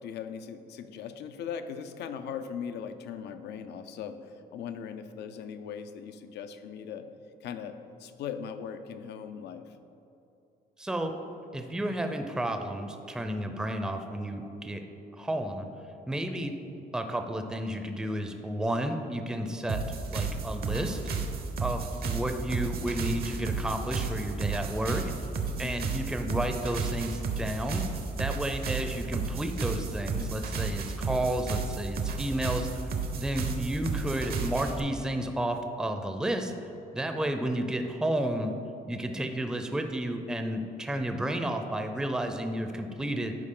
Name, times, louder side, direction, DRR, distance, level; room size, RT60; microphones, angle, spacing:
voice 1, 0.0-4.2 4.5-7.1 7.4-9.6 25.6-25.9, left 7 dB, 75° left, 9 dB, 0.5 m, -39 dB
voice 2, 10.8-11.2 11.5-14.8 15.2-15.7 16.1-16.5 16.9-19.8 20.1-21.0 21.6-25.0 25.6-27.8 28.2-32.9 33.2-36.5 36.9-38.6 38.9-43.4, right 1 dB, 5° right, 6 dB, 0.5 m, -31 dB
sound 1, 19.7-34.8, right 4 dB, 60° right, 0.8 m, -33 dB
10.5 x 4.6 x 3.8 m, 2.8 s
cardioid pair, 100°, 18 cm